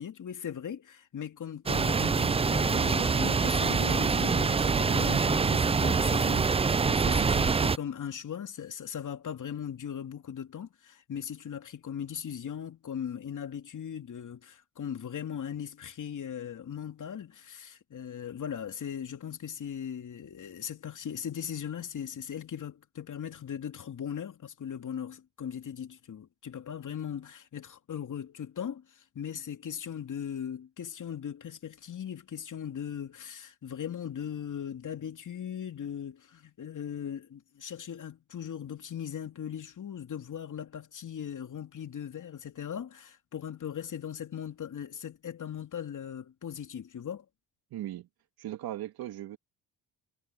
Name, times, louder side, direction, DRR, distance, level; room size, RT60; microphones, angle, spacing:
voice 1, 0.0-47.2, left 8 dB, 55° left, 2.9 m, -39 dB
sound 1, 1.7-7.8, right 5 dB, 15° right, 0.4 m, -25 dB
voice 2, 7.1-7.5 47.7-48.1 48.4-49.4, right 13 dB, 75° right, 3.1 m, -38 dB
supercardioid pair, 60°, 37 cm